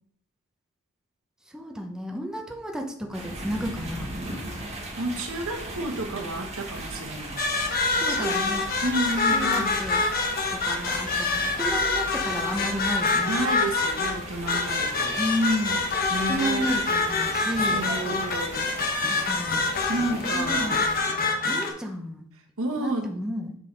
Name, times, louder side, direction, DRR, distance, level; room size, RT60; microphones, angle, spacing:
voice 1, 1.5-4.1 8.0-8.7 9.3-10.0 10.5-13.3 15.2-15.9 16.3-17.9 19.0-19.6 20.2-20.8 21.5-22.3 22.7-23.5, equal, 5° right, 1 dB, 0.8 m, -31 dB
sound 1, 3.1-21.0, right 1 dB, 30° right, 1.5 m, -39 dB
voice 2, 5.0-7.4 8.1-9.7 13.3-15.2 16.1-16.7 17.6-18.7 19.9-20.8 22.6-23.1, right 2 dB, 65° right, 4 dB, 1.1 m, -31 dB
sound 2, 7.4-21.7, left 3 dB, 40° left, 1.0 m, -26 dB
7.5 x 5.3 x 3.9 m, 0.66 s
head